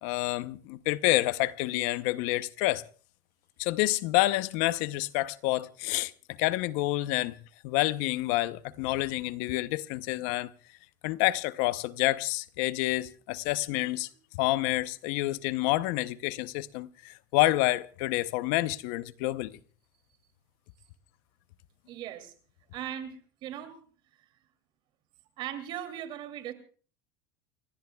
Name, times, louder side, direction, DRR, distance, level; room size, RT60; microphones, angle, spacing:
voice 1, 0.0-2.8 3.6-6.1 6.4-7.4 7.6-10.5 11.0-14.1 14.4-19.6, left 18 dB, 65° left, 0.7 m, -28 dB
voice 2, 21.9-22.3 22.7-23.8 24.2-24.3 25.4-26.5, right 10 dB, 50° right, 2.6 m, -39 dB
29.5 x 16.5 x 2.3 m
supercardioid pair, 135°, 11 cm